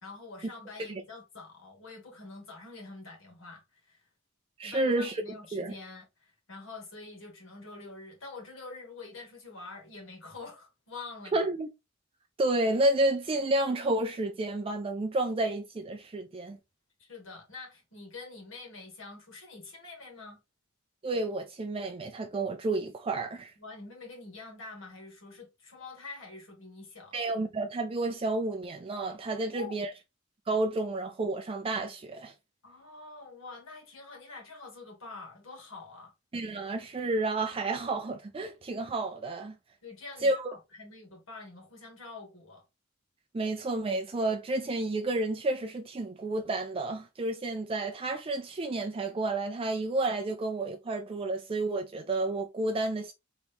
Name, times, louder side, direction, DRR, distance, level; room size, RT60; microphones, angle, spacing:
voice 1, 0.0-4.0 4.6-11.4 17.0-20.4 23.6-27.2 29.4-29.9 32.6-36.1 39.8-42.6, left 3 dB, 75° left, 2.0 m, -46 dB
voice 2, 4.6-5.2 5.5-5.7 11.3-11.7 12.4-16.6 21.0-23.5 27.1-29.9 30.5-32.3 36.3-39.6 40.2-40.5 43.3-53.1, right 2 dB, 25° right, 0.4 m, -30 dB
4.0 x 3.0 x 3.4 m
head